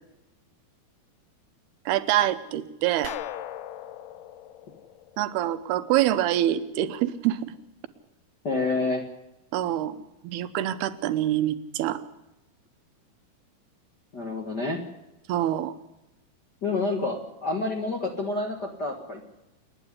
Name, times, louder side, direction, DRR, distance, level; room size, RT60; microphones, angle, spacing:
voice 1, 1.9-3.2 5.2-7.5 9.5-10.0 10.2-12.0 15.3-15.7, right 13 dB, 90° right, 12 dB, 3.0 m, -25 dB
sound 1, 3.0-5.8, left 11 dB, 85° left, 3.0 m, -39 dB
voice 2, 8.4-9.0 14.1-14.8 16.6-19.3, left 3 dB, 45° left, 3 dB, 1.3 m, -28 dB
28.0 x 10.0 x 9.9 m, 0.95 s
omnidirectional pair, 4.5 m